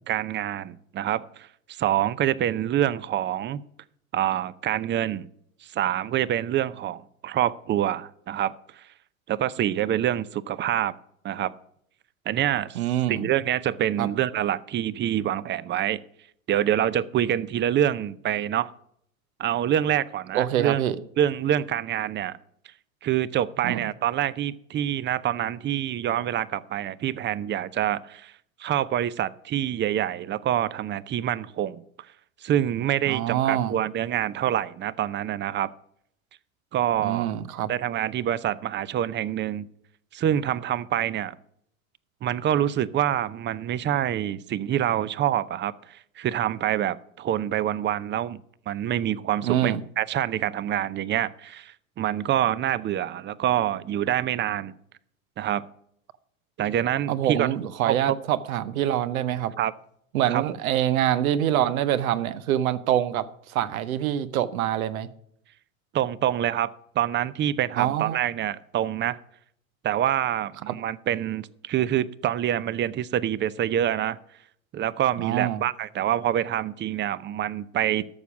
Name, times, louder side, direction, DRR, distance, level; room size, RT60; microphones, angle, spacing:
voice 1, 0.1-1.5 1.8-3.6 4.1-5.3 5.6-8.8 9.3-11.0 11.2-11.5 12.3-12.8 13.1-16.0 16.5-18.7 19.4-20.8 21.2-22.4 23.0-28.3 28.6-31.8 32.4-35.7 36.7-37.3 37.7-39.7 40.1-41.4 42.2-48.4 48.7-54.7 55.4-55.7 56.6-57.5 57.8-58.2 59.6-59.7 60.3-60.4 65.9-69.2 69.8-74.2 74.7-78.1, right 11 dB, 25° right, 0.5 m, -26 dB
voice 2, 12.7-13.3 14.0-14.1 20.3-21.0 23.6-23.8 33.1-33.7 37.0-37.7 49.4-49.8 57.1-59.5 60.1-65.1 67.7-68.2 70.7-70.8 75.2-75.6, right 11 dB, 80° right, 0.9 m, -25 dB
12.0 x 7.0 x 6.1 m
hypercardioid pair, 95°, 41 cm